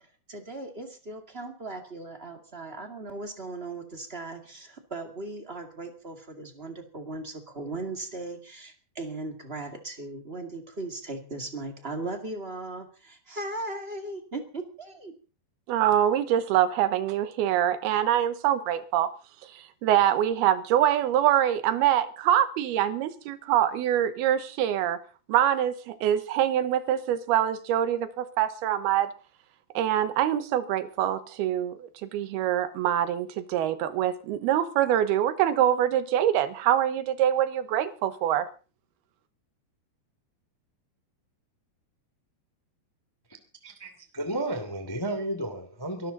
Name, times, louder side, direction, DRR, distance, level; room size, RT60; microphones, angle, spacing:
voice 1, 0.3-15.1, right 2 dB, 30° right, 5 dB, 1.2 m, -38 dB
voice 2, 15.7-19.1 19.8-25.0 25.3-29.1 29.7-38.5, right 11 dB, 70° right, 12 dB, 2.9 m, -24 dB
voice 3, 43.6-46.1, right 1 dB, 10° left, 7 dB, 1.3 m, -32 dB
23.5 x 13.0 x 4.0 m, 0.35 s
omnidirectional pair, 5.0 m